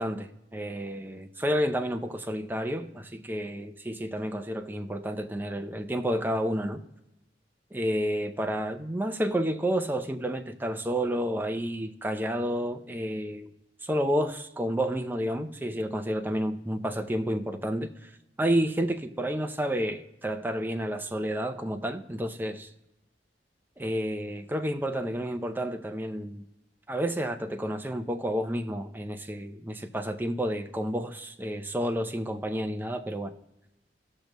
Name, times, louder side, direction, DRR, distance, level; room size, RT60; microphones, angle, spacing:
voice 1, 0.0-6.8 7.7-13.5 13.8-18.1 18.4-22.7 23.8-26.5 26.9-33.3, equal, 10° right, 0.7 m, -30 dB
17.0 x 6.6 x 3.0 m
head